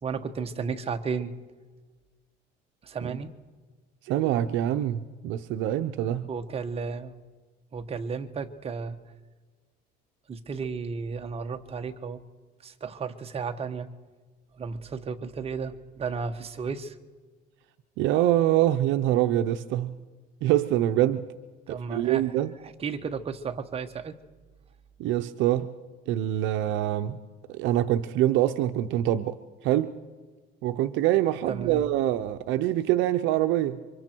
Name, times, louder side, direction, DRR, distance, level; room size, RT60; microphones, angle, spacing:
voice 1, 0.0-1.3 2.8-3.3 6.3-7.1 7.7-9.0 10.3-12.2 12.6-13.9 14.5-16.9 21.7-22.3 22.6-24.1 31.5-31.8, right 5 dB, 30° right, 6 dB, 1.2 m, -33 dB
voice 2, 4.0-6.3 18.0-19.9 20.4-21.2 21.7-22.5 25.0-25.7 26.1-27.2 27.5-29.4 29.6-29.9 30.6-33.8, right 13 dB, 75° right, 9 dB, 0.7 m, -25 dB
28.5 x 24.5 x 4.6 m, 1.4 s
cardioid pair, 120°, 20 cm